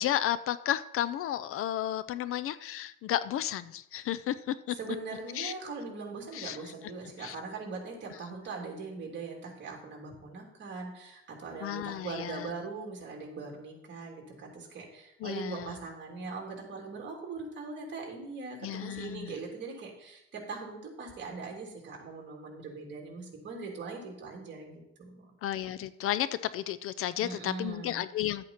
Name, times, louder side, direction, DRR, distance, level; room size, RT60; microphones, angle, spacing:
voice 1, 0.0-4.8 5.4-5.5 6.3-6.6 7.2-7.3 11.6-12.5 15.2-15.7 18.6-19.3 25.4-26.3 26.5-28.4, left 12 dB, 45° left, 15 dB, 0.5 m, -33 dB
voice 2, 4.7-25.2 27.2-28.0, right 4 dB, 35° right, 0 dB, 3.2 m, -41 dB
12.0 x 8.4 x 4.4 m, 0.84 s
cardioid pair, 145°, 31 cm